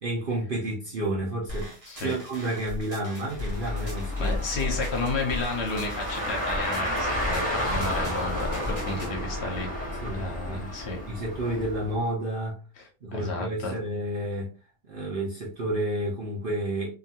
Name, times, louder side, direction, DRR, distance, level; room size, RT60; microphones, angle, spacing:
voice 1, 0.0-1.7 2.0-4.4 10.0-10.7 11.1-12.6 13.0-14.5 14.8-16.9, right 1 dB, 80° right, 0.4 m, -30 dB
sound 1, 1.5-9.1, left 1 dB, 35° right, 0.6 m, -38 dB
voice 2, 1.9-2.2 4.2-9.8 10.1-11.0 12.8-13.7, left 3 dB, 55° left, 0.8 m, -32 dB
Car, 3.3-11.9, left 1 dB, 5° left, 0.6 m, -31 dB
2.8 x 2.4 x 2.7 m
omnidirectional pair, 1.9 m